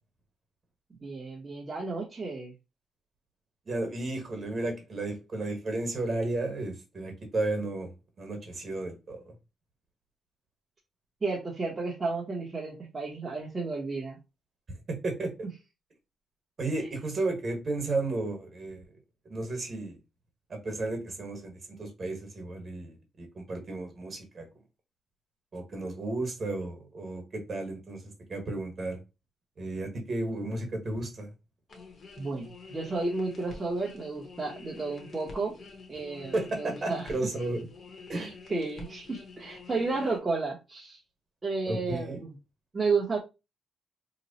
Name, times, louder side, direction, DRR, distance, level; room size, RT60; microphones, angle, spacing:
voice 1, 1.0-2.5 11.2-14.2 32.2-35.5 35.9-37.1 38.1-41.0 41.4-42.3 42.7-43.2, right 3 dB, 25° right, 0.8 m, -32 dB
voice 2, 3.7-7.9 8.2-9.3 14.9-15.3 16.6-18.8 19.3-20.0 20.5-24.5 25.5-28.0 28.3-29.0 29.6-31.3 36.3-37.7 38.1-38.3 41.7-42.2, right 2 dB, 40° right, 1.3 m, -33 dB
sound 1, 31.7-40.2, left 4 dB, 45° left, 0.9 m, -48 dB
3.0 x 2.1 x 4.0 m
cardioid pair, 135°, 0 cm